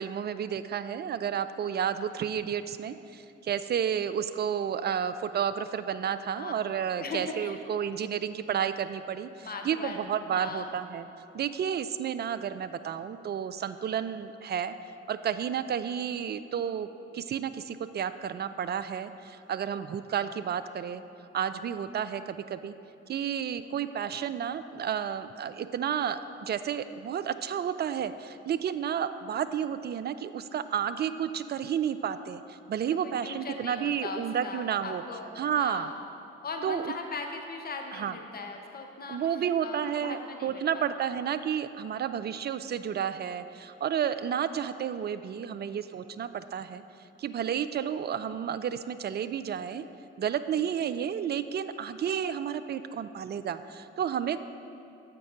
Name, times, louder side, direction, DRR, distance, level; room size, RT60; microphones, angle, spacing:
voice 1, 0.0-11.0 11.3-14.7 15.1-16.9 17.1-21.0 21.3-22.7 23.1-35.0 35.4-35.9 36.6-36.9 37.9-38.1 39.1-46.8 47.2-49.8 50.2-54.4, right 8 dB, 30° right, 12 dB, 0.4 m, -31 dB
voice 2, 6.9-7.6 9.4-10.8 33.0-36.0 36.4-41.2, left 3 dB, 25° left, 3 dB, 0.8 m, -39 dB
7.8 x 5.2 x 4.8 m, 2.7 s
hypercardioid pair, 40°, 35 cm